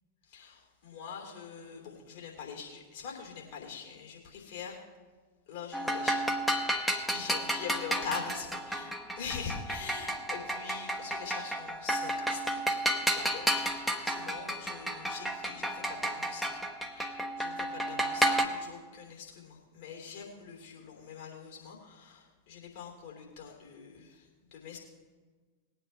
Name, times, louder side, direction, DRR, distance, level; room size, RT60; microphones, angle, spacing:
voice 1, 0.3-4.8 5.5-6.3 6.6-6.8 7.1-12.6 13.1-16.5 16.9-24.8, left 6 dB, 55° left, 0 dB, 3.1 m, -43 dB
sound 1, 5.7-18.5, right 1 dB, ahead, 1.0 m, -32 dB
19.5 x 9.0 x 3.4 m, 1.4 s
figure-of-eight pair, 90°, 0 cm